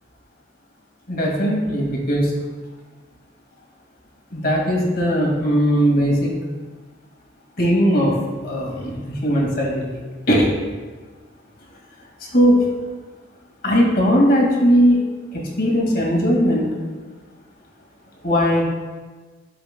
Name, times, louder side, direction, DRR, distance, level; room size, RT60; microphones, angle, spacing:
voice 1, 1.1-2.3 4.3-6.3 7.6-8.1 8.4-9.0 9.2-10.0 10.3-10.5 12.3-12.6 13.6-15.0 15.3-16.8 18.2-18.6, equal, 50° left, -2 dB, 2.0 m, -18 dB
12.0 x 7.0 x 2.2 m, 1.3 s
head